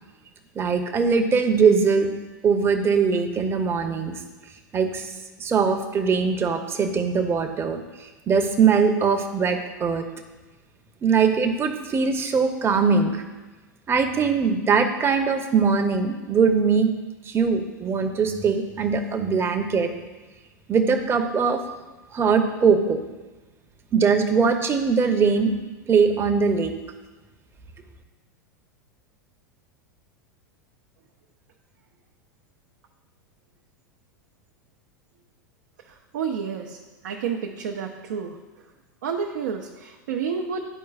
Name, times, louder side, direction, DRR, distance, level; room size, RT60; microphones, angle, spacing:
voice 1, 0.5-2.1 2.4-4.1 4.7-5.1 5.4-10.0 11.0-13.2 13.9-16.9 17.3-19.9 20.7-21.6 22.1-23.0 23.9-25.5 25.9-26.7, right 5 dB, 25° right, 6 dB, 0.8 m, -21 dB
voice 2, 36.1-36.8 37.0-38.4 39.0-40.7, right 6 dB, 65° right, 1 dB, 0.6 m, -29 dB
12.0 x 4.6 x 2.4 m, 1.2 s
figure-of-eight pair, 90°, 10 cm